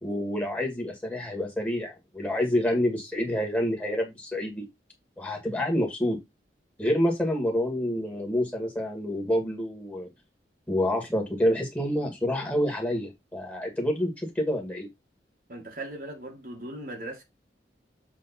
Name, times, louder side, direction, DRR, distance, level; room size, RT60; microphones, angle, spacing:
voice 1, 0.0-4.7 5.2-6.2 6.8-10.1 10.7-14.9, left 1 dB, 10° left, 2.1 m, -28 dB
voice 2, 15.5-17.2, right 1 dB, 55° right, 1.8 m, -38 dB
7.6 x 3.7 x 4.2 m
head